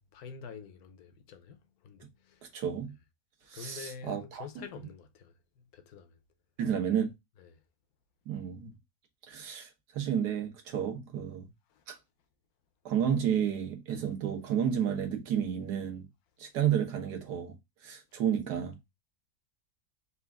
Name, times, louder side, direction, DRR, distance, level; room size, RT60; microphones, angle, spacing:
voice 1, 0.1-1.6 1.8-2.5 3.5-5.3 5.7-6.1 7.4-7.5 11.8-11.9, left 6 dB, 70° left, 1.1 m, -47 dB
voice 2, 2.5-2.9 3.5-4.4 6.6-7.1 8.3-8.7 9.3-11.5 11.9-12.0 12.8-16.1 16.4-17.5 17.8-18.8, right 8 dB, 75° right, 1.6 m, -31 dB
4.4 x 2.5 x 3.4 m
omnidirectional pair, 1.8 m